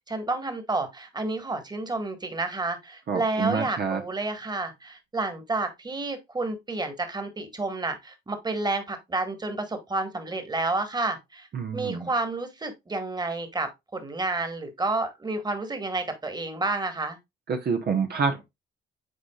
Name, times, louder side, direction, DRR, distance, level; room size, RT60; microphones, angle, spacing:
voice 1, 0.1-11.5 11.7-17.2, right 2 dB, 20° right, 1.7 m, -30 dB
voice 2, 3.1-4.0 11.5-12.1 17.5-18.4, right 5 dB, 55° right, 1.1 m, -27 dB
9.5 x 4.1 x 2.4 m
cardioid pair, 90°, 20 cm